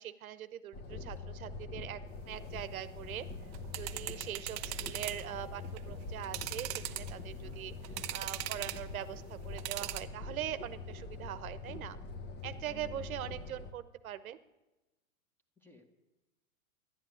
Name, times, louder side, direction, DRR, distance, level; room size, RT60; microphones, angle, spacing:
voice 1, 0.0-2.0 2.3-3.3 3.7-7.7 8.1-12.0 12.4-14.4, right 11 dB, 75° right, 13 dB, 1.0 m, -42 dB
sound 1, 0.7-13.7, left 3 dB, 25° left, 1.2 m, -44 dB
voice 2, 1.0-1.3 7.3-7.6 12.7-13.4 15.6-16.0, left 2 dB, 5° left, 5 dB, 1.7 m, -58 dB
sound 2, 3.4-5.2 5.6-5.8 6.2-7.3 7.8-8.9 9.6-10.0, right 16 dB, 25° right, 0.5 m, -39 dB
13.0 x 11.5 x 9.3 m, 1.1 s
hypercardioid pair, 135°, 42 cm